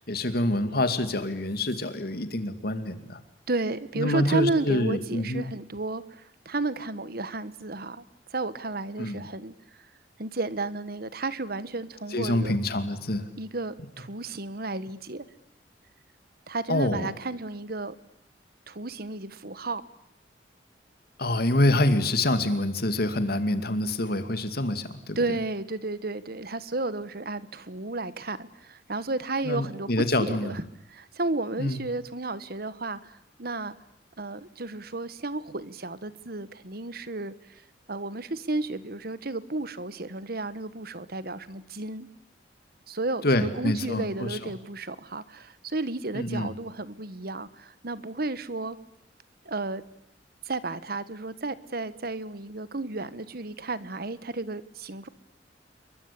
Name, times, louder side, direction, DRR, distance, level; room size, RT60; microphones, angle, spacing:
voice 1, 0.0-3.2 3.9-5.5 9.0-9.3 12.1-13.3 16.7-17.1 21.2-25.2 29.4-30.6 31.6-31.8 43.2-44.4 46.1-46.5, left 1 dB, 55° left, 10 dB, 2.4 m, -26 dB
voice 2, 3.5-9.5 10.2-12.6 13.4-15.3 16.5-17.9 18.7-19.8 25.1-29.9 30.2-30.6 30.9-33.7 34.2-37.6 37.9-42.1 42.9-48.8 49.4-49.8 50.4-55.1, right 2 dB, 55° right, 15 dB, 1.4 m, -32 dB
28.5 x 23.0 x 8.6 m, 0.76 s
head